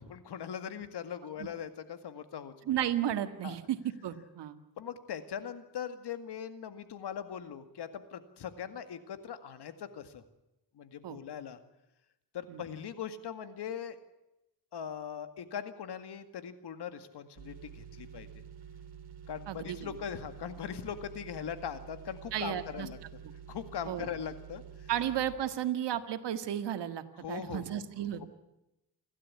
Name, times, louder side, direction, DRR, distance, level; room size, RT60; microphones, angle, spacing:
voice 1, 0.0-2.5 3.4-3.6 4.8-10.2 10.7-11.6 12.3-14.0 14.7-18.4 19.3-23.0 23.5-24.9 27.2-27.8 28.2-28.3, left 8 dB, 75° left, 10 dB, 2.1 m, -40 dB
voice 2, 2.7-4.6 11.0-11.2 12.5-12.6 19.5-20.0 22.3-22.9 23.2-23.3 23.9-24.1 24.9-28.3, right 11 dB, 85° right, 9 dB, 1.8 m, -33 dB
sound 1, 17.4-25.4, right 8 dB, 70° right, 4.6 m, -49 dB
29.0 x 12.5 x 9.6 m, 0.94 s
cardioid pair, 90°, 40 cm